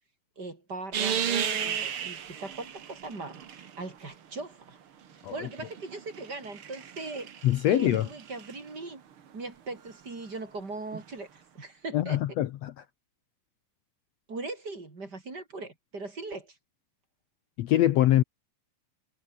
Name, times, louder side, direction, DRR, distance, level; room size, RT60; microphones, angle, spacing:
voice 1, 0.4-4.8 5.3-7.3 7.7-9.0 9.3-12.2 14.3-16.6, right 3 dB, 30° right, 3.9 m, -39 dB
sound 1, 0.9-4.0 5.1-8.6 10.9-11.0, right 8 dB, 50° right, 2.1 m, -34 dB
voice 2, 7.4-8.0 11.9-12.8 17.6-18.2, left 13 dB, 70° left, 1.7 m, -24 dB
omnidirectional pair, 3.8 m